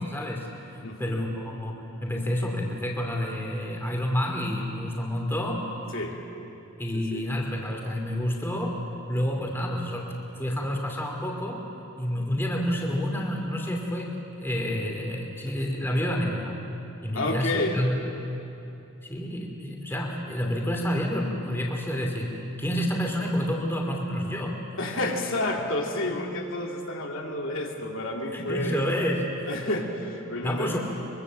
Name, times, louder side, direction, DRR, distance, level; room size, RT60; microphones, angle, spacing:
voice 1, 0.0-5.7 6.8-8.8 9.1-11.6 12.0-16.6 17.0-17.9 19.0-24.6 28.3-29.5 30.4-30.8, equal, 10° left, 0 dB, 2.7 m, -29 dB
voice 2, 0.8-1.3 5.9-6.2 6.9-7.3 17.1-17.8 24.8-28.8 29.5-30.7, left 1 dB, 65° left, 0 dB, 2.6 m, -30 dB
24.0 x 23.0 x 7.5 m, 2.9 s
head